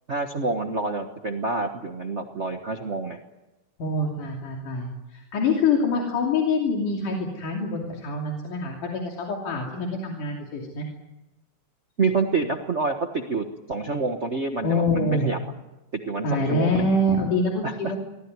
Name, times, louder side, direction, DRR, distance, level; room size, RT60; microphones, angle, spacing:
voice 1, 0.1-3.2 12.0-15.4 16.1-16.8 17.6-18.0, right 4 dB, 65° right, 4 dB, 0.6 m, -27 dB
voice 2, 3.8-10.9 14.6-15.3 16.2-18.0, left 2 dB, 80° left, 0 dB, 4.4 m, -25 dB
24.0 x 19.0 x 9.6 m, 1.0 s
omnidirectional pair, 3.6 m